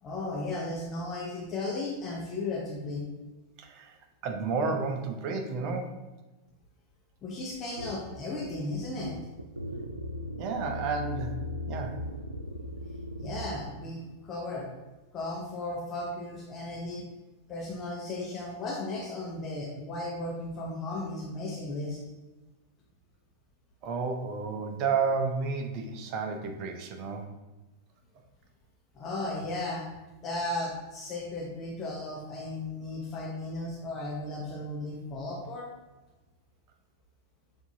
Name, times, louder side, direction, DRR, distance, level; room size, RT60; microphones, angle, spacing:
voice 1, 0.0-3.0 7.2-9.2 13.2-14.7 15.1-17.1 17.5-22.0 28.9-29.9 30.2-35.7, left 2 dB, 25° left, -3 dB, 0.9 m, -35 dB
voice 2, 3.6-4.0 4.2-6.0 10.4-11.4 11.7-12.0 23.8-27.3, right 4 dB, 40° right, 4 dB, 0.7 m, -31 dB
sound 1, 7.8-13.7, left 1 dB, 85° right, 0.4 m, -38 dB
6.9 x 2.8 x 2.7 m, 1.1 s
figure-of-eight pair, 90°, 0 cm